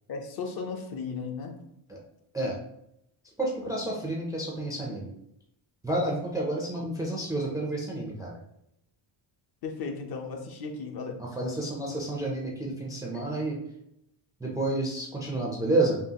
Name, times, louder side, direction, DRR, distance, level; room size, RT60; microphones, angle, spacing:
voice 1, 0.1-1.6 3.6-3.7 9.6-11.2 13.1-13.2, left 4 dB, 50° left, 4 dB, 0.6 m, -35 dB
voice 2, 3.4-5.1 5.8-8.3 11.2-13.6 14.4-16.0, right 2 dB, 10° right, -2 dB, 0.3 m, -30 dB
5.4 x 2.3 x 2.8 m, 0.79 s
cardioid pair, 150°, 50 cm